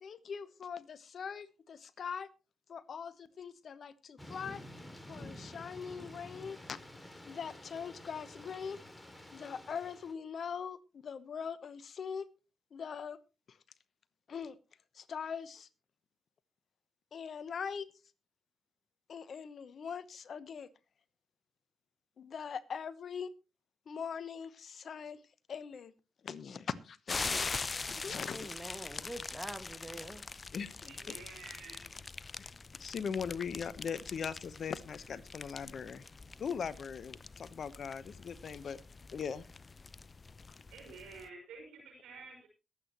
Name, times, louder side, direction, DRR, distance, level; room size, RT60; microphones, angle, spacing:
voice 1, 0.0-2.3 2.7-4.6 5.1-6.8 7.2-8.8 9.3-12.3 12.7-13.2 13.5-13.6 14.3-14.6 14.9-15.7 17.1-17.9 19.1-20.7 22.2-23.3 23.9-25.2 25.5-25.9 26.2-28.5 30.5-31.1 32.8-36.0 36.4-38.8 39.1-39.4, left 6 dB, 60° left, 1.0 m, -41 dB
Thunder / Rain, 4.2-10.1, left 1 dB, 10° left, 2.5 m, -50 dB
sound 1, 27.1-41.3, left 4 dB, 40° left, 0.6 m, -43 dB
voice 2, 28.2-30.3, right 1 dB, 10° right, 1.9 m, -45 dB
voice 3, 30.9-31.8 40.7-42.5, right 4 dB, 80° right, 5.4 m, -50 dB
22.0 x 8.5 x 3.1 m
hypercardioid pair, 45°, 0 cm